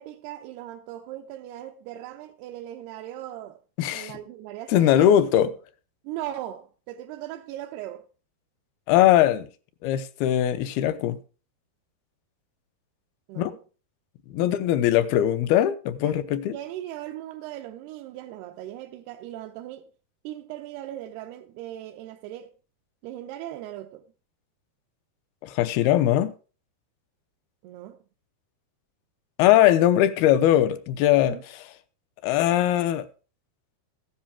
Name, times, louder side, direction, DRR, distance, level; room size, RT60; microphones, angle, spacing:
voice 1, 0.0-3.6 3.9-5.1 6.0-8.1 13.3-13.6 14.4-14.5 16.0-16.2 16.5-19.9 20.2-22.5 23.0-24.0 27.6-28.0 31.3-31.4, right 13 dB, 90° right, 2.8 m, -38 dB
voice 2, 3.8-4.1 4.7-5.5 8.9-9.5 9.8-11.2 13.4-13.6 14.3-16.6 25.4-26.3 29.4-31.4 32.2-33.1, left 12 dB, 85° left, 2.6 m, -20 dB
14.5 x 10.0 x 3.6 m
omnidirectional pair, 4.5 m